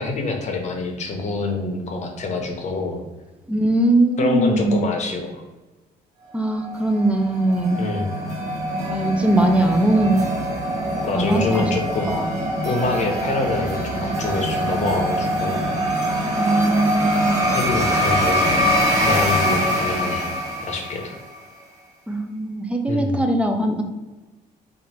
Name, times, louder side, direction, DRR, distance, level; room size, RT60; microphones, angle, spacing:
voice 1, 0.0-3.0 4.2-5.4 7.8-8.2 11.0-12.1 12.6-15.7 17.5-18.6 19.0-20.3 20.7-21.2 22.9-23.2, left 3 dB, 45° left, 2 dB, 0.8 m, -26 dB
voice 2, 3.5-4.8 6.3-7.8 8.8-10.2 11.1-11.7 12.1-12.3 16.4-17.5 22.1-23.8, right 1 dB, 5° right, 4 dB, 0.5 m, -20 dB
sound 1, 6.6-21.3, equal, 40° right, 1.1 m, -23 dB
2.9 x 2.6 x 4.2 m, 1.2 s
cardioid pair, 110°, 17 cm